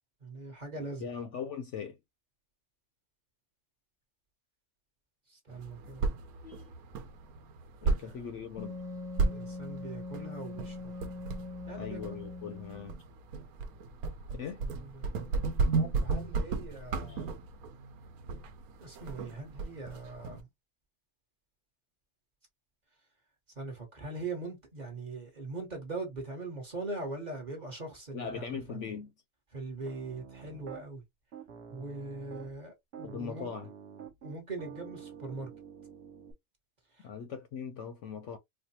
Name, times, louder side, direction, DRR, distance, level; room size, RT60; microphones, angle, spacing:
voice 1, 0.2-1.1 5.3-6.1 7.8-8.2 9.2-10.9 11.7-12.2 14.3-15.3 15.7-17.3 18.8-20.5 23.6-28.8 29.5-31.0 31.7-33.5 34.2-35.5 37.0-37.1, right 3 dB, 35° right, 1.1 m, -41 dB
voice 2, 0.8-2.0 6.4-6.7 7.8-8.7 11.8-12.9 14.4-14.6 17.1-17.3 28.1-29.1 33.0-33.7 37.0-38.4, left 7 dB, 65° left, 0.8 m, -40 dB
sound 1, 5.5-20.4, right 4 dB, 85° right, 1.1 m, -35 dB
Wind instrument woodwind instrument, 8.6-13.0, left 3 dB, 5° right, 0.9 m, -42 dB
Piano, 29.9-30.8 31.3-32.6 32.9-36.3, right 7 dB, 55° right, 1.0 m, -48 dB
4.3 x 2.2 x 2.7 m
omnidirectional pair, 1.5 m